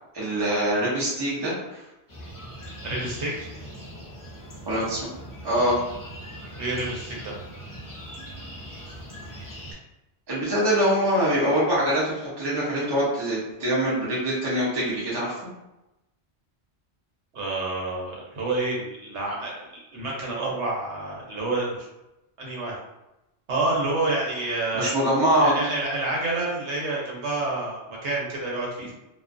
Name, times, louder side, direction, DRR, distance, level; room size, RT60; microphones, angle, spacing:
voice 1, 0.1-1.8 4.7-5.1 5.4-5.8 10.3-15.5 24.7-25.5, equal, 30° right, -7 dB, 0.5 m, -24 dB
sound 1, 2.1-9.7, equal, 25° left, 0.4 m, -40 dB
voice 2, 2.8-3.3 6.6-7.3 17.3-21.9 22.4-22.8 23.5-24.9 25.4-28.9, right 2 dB, 85° right, -3 dB, 1.1 m, -28 dB
2.4 x 2.3 x 2.5 m, 0.95 s
omnidirectional pair, 1.1 m